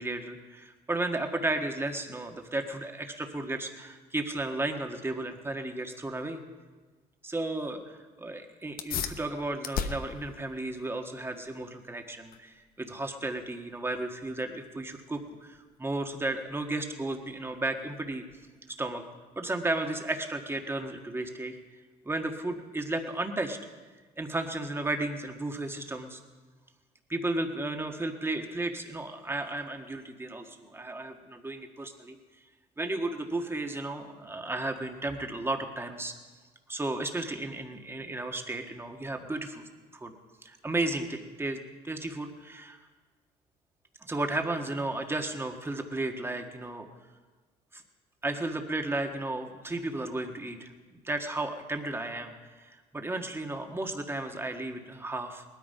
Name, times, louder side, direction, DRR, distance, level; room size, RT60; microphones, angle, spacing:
voice 1, 0.0-6.4 7.2-18.2 18.7-19.0 19.3-21.6 22.0-23.6 24.2-26.2 27.1-32.2 32.8-36.1 36.7-39.6 39.9-40.1 40.4-41.6 41.8-42.8 44.0-46.9 47.7-47.8 48.2-55.4, right 2 dB, 15° right, 5 dB, 1.6 m, -34 dB
sound 1, 8.7-18.7, left 7 dB, 60° left, 1.0 m, -41 dB
19.0 x 13.0 x 5.5 m, 1.3 s
cardioid pair, 110°, 17 cm